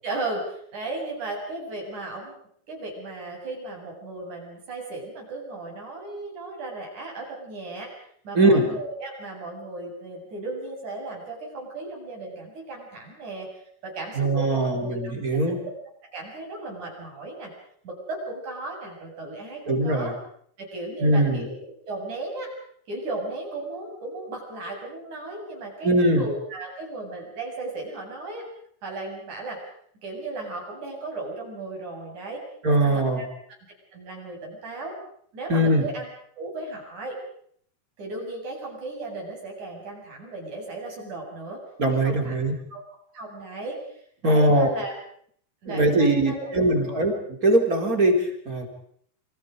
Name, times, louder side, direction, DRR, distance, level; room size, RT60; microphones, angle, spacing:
voice 1, 0.0-2.4 2.7-7.9 8.2-13.5 13.8-15.0 15.5-15.7 16.0-17.5 17.8-20.1 20.6-21.6 21.9-22.5 22.9-28.5 28.8-29.6 30.0-32.4 32.7-33.3 33.9-35.0 35.3-36.1 36.4-37.2 38.0-41.6 41.9-42.4 42.7-42.8 43.1-44.9 45.6-47.1, right 2 dB, 70° right, 0 dB, 9.1 m, -35 dB
voice 2, 8.3-8.7 14.1-15.6 19.7-20.1 21.0-21.5 25.8-26.3 32.6-33.2 35.5-35.9 41.8-42.5 44.2-44.7 45.7-47.1 47.4-48.7, right 1 dB, 25° right, 3 dB, 4.6 m, -21 dB
28.5 x 25.5 x 5.2 m, 0.64 s
omnidirectional pair, 3.6 m